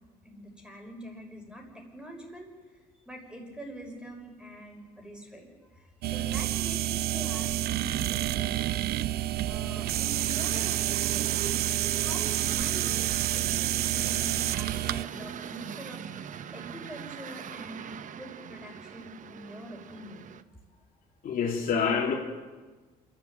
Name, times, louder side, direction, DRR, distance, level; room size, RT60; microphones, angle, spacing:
voice 1, 0.2-9.0 9.4-12.9 13.2-20.2, equal, 5° right, 1 dB, 6.2 m, -44 dB
sound 1, 6.0-15.0, right 14 dB, 70° right, 0.6 m, -29 dB
sound 2, 9.7-20.4, right 8 dB, 50° right, 0.9 m, -41 dB
voice 2, 21.2-22.1, left 6 dB, 55° left, 1 dB, 3.0 m, -27 dB
27.5 x 12.0 x 8.9 m, 1.3 s
cardioid pair, 110°, 17 cm